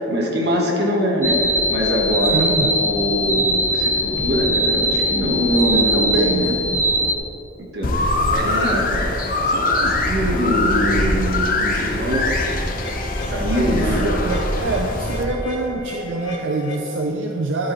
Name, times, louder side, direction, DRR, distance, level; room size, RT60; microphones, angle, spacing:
voice 1, 0.1-6.5 7.7-9.1 9.5-12.7 13.3-14.1, equal, 55° right, -2 dB, 1.6 m, -23 dB
sound 1, 1.2-7.2, equal, 15° right, 0.6 m, -21 dB
voice 2, 2.3-2.8 5.7-6.7 13.5-17.7, right 2 dB, 75° right, 2 dB, 0.5 m, -25 dB
sound 2, 7.8-15.2, left 2 dB, 45° left, 0.8 m, -22 dB
sound 3, 12.0-17.0, left 1 dB, 85° left, 2.0 m, -34 dB
11.0 x 8.4 x 3.2 m, 2.9 s
head